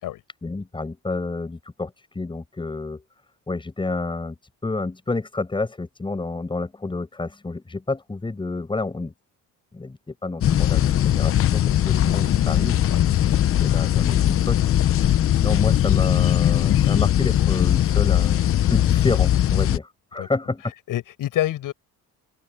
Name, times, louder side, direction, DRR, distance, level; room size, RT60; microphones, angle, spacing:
voice 1, 0.4-3.0 3.5-4.3 4.6-9.1 9.7-12.9 13.6-18.4 18.7-20.6, left 3 dB, 15° left, 6.2 m, -29 dB
sound 1, 10.4-19.8, left 11 dB, 40° left, 0.6 m, -19 dB
voice 2, 20.9-21.7, left 13 dB, 75° left, 7.5 m, -26 dB
cardioid pair, 155°, 33 cm